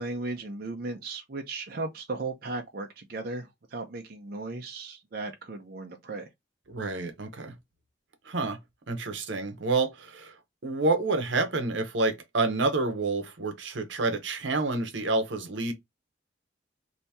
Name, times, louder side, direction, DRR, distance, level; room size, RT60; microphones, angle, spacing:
voice 1, 0.0-6.3, right 3 dB, 50° right, 0.6 m, -36 dB
voice 2, 6.7-7.6 8.3-8.6 8.9-10.3 10.6-15.7, right 3 dB, 80° right, 0.8 m, -28 dB
2.8 x 2.7 x 3.4 m
head